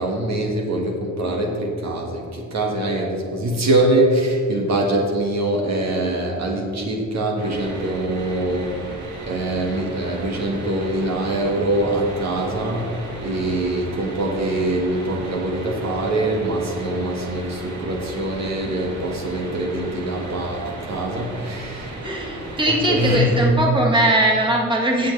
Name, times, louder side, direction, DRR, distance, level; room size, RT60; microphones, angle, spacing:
voice 1, 0.0-22.0 22.8-23.4, right 1 dB, 60° right, 0 dB, 1.8 m, -23 dB
sound 1, 7.4-23.5, right 1 dB, 75° right, 2.5 m, -35 dB
voice 2, 22.0-25.1, right 1 dB, 15° right, -2 dB, 1.9 m, -20 dB
16.5 x 7.1 x 3.4 m, 2.3 s
cardioid pair, 90°, 30 cm